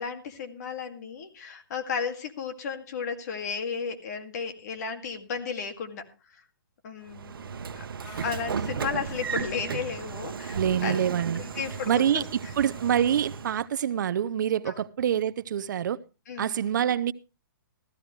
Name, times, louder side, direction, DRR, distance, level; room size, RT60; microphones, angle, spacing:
voice 1, 0.0-6.4 6.8-7.9 8.2-11.0 11.4-12.3 14.7-14.8 16.3-16.6, left 6 dB, 50° left, 2.2 m, -34 dB
Train / Sliding door, 7.1-13.6, right 6 dB, 85° right, 1.0 m, -35 dB
sound 1, 8.0-13.2, left 1 dB, 30° left, 5.1 m, -51 dB
voice 2, 10.5-11.4 11.9-16.0 16.4-17.1, right 9 dB, 60° right, 0.6 m, -26 dB
14.5 x 14.5 x 3.2 m
hypercardioid pair, 160°, 11 cm